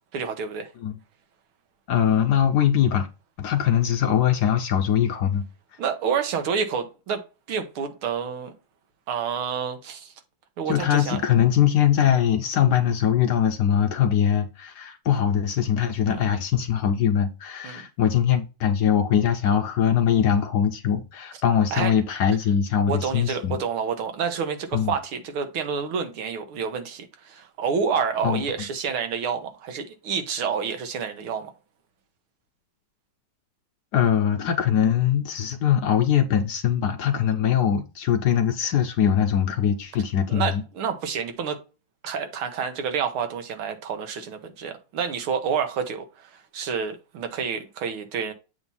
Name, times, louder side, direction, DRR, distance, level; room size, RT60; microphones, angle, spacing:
voice 1, 0.1-0.7 5.8-8.5 9.1-10.1 10.6-11.2 16.1-16.3 17.6-17.9 21.7-21.9 22.9-31.5 40.3-41.6 42.0-48.3, right 6 dB, 90° right, 2.0 m, -29 dB
voice 2, 1.9-3.1 3.4-5.4 10.7-23.6 24.7-24.9 28.2-28.4 33.9-40.6, left 9 dB, 70° left, 1.0 m, -22 dB
7.8 x 2.9 x 5.5 m
omnidirectional pair, 2.3 m